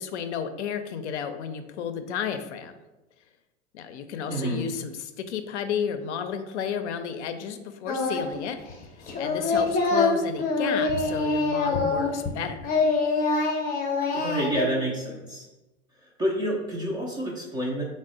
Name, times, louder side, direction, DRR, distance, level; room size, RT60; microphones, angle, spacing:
voice 1, 0.0-2.7 3.7-8.6 9.2-12.7, left 7 dB, 65° left, 8 dB, 0.5 m, -32 dB
voice 2, 4.3-4.7 14.1-15.5 16.2-17.8, equal, 10° right, -2 dB, 0.3 m, -29 dB
Singing, 7.9-8.4 8.7-12.4 12.6-14.7, left 3 dB, 25° left, 0.7 m, -25 dB
3.9 x 2.1 x 3.7 m, 1.1 s
hypercardioid pair, 105°, 37 cm